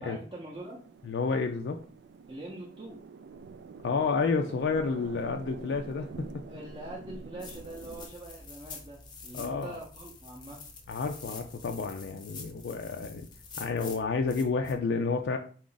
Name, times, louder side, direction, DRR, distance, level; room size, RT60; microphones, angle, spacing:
voice 1, 0.0-0.8 2.3-3.0 6.5-10.6, right 1 dB, 25° right, -5 dB, 0.6 m, -43 dB
sound 1, 0.5-8.1, right 4 dB, 70° right, 0.3 m, -46 dB
voice 2, 1.0-1.8 3.8-6.1 9.3-9.8 10.9-13.3 13.6-15.4, left 4 dB, 70° left, 4 dB, 0.3 m, -30 dB
sound 2, 7.4-14.7, left 4 dB, 25° left, 0.6 m, -47 dB
4.2 x 2.4 x 3.8 m, 0.42 s
head